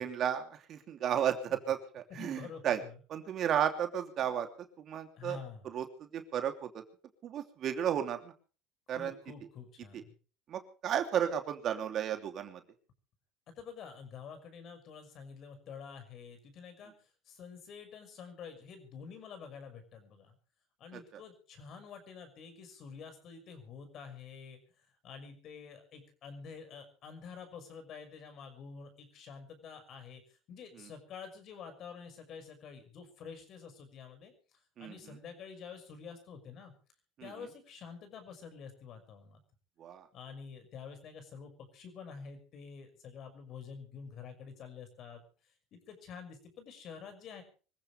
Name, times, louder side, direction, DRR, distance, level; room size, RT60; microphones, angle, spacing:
voice 1, 0.0-2.8 3.1-5.4 5.6-5.9 6.1-6.8 7.2-8.3 8.9-9.1 9.9-10.0 10.5-12.6 20.9-21.0 30.7-30.9 34.8-35.2 37.2-37.5 39.8-40.1, right 9 dB, 50° right, 6 dB, 3.0 m, -33 dB
voice 2, 2.1-2.9 4.2-4.3 5.1-5.6 8.9-10.1 13.5-20.4 20.8-34.3 34.8-36.7 37.2-39.4 40.1-47.4, left 6 dB, 50° left, 7 dB, 6.1 m, -48 dB
25.0 x 15.5 x 3.4 m, 0.38 s
hypercardioid pair, 85°, 0 cm